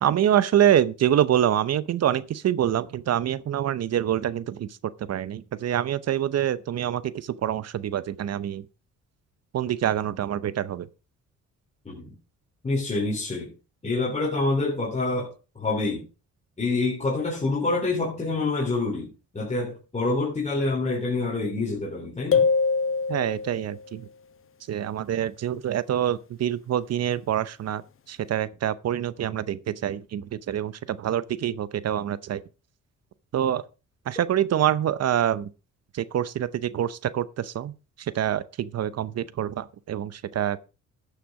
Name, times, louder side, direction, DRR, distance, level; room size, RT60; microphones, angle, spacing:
voice 1, 0.0-4.7 5.1-8.6 9.5-10.9 23.1-24.1 24.7-27.8 28.1-32.4 33.3-33.6 34.1-35.5 35.9-37.7 38.1-40.6, right 10 dB, 55° right, 0.8 m, -26 dB
voice 2, 12.6-13.5 13.8-16.0 16.6-22.5, left 3 dB, 25° left, 3.8 m, -27 dB
sound 1, 22.3-23.8, left 5 dB, 45° left, 0.9 m, -23 dB
11.5 x 6.7 x 4.8 m
cardioid pair, 90°, 30 cm